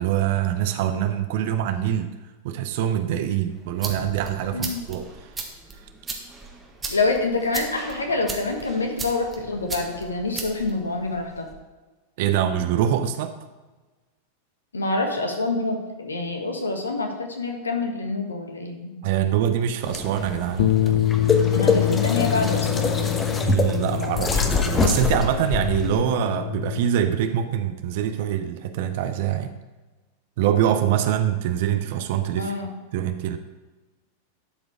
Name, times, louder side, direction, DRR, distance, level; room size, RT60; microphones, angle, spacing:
voice 1, 0.0-2.1 2.4-5.1 12.2-13.3 19.0-21.4 23.4-29.5 30.4-32.5 32.9-33.4, right 10 dB, 50° right, 8 dB, 0.6 m, -24 dB
sound 1, 3.5-11.6, right 3 dB, 15° right, 1.5 m, -37 dB
voice 2, 4.5-4.8 6.9-11.5 14.7-19.0 21.5-22.9 32.4-32.7, left 3 dB, 75° left, 4 dB, 1.3 m, -26 dB
sound 2, 19.8-26.0, left 4 dB, 20° left, 1.0 m, -25 dB
Bass guitar, 20.6-26.8, left 14 dB, 55° left, 0.5 m, -25 dB
11.5 x 5.1 x 4.8 m, 1.2 s
figure-of-eight pair, 90°, 0 cm